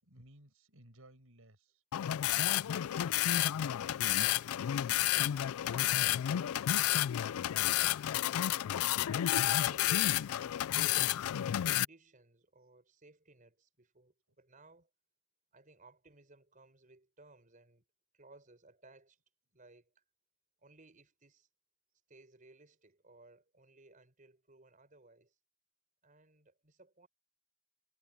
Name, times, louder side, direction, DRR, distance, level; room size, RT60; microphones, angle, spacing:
voice 1, 0.0-1.8, right 1 dB, 75° right, 5.5 m, -60 dB
sound 1, 1.9-11.8, left 12 dB, 90° left, 0.3 m, -31 dB
voice 2, 3.9-8.0 8.6-11.2 11.7-14.9 15.5-17.8 18.1-19.2 19.5-20.0 20.6-21.5 22.1-25.3 26.0-27.1, right 2 dB, 40° right, 5.1 m, -61 dB
head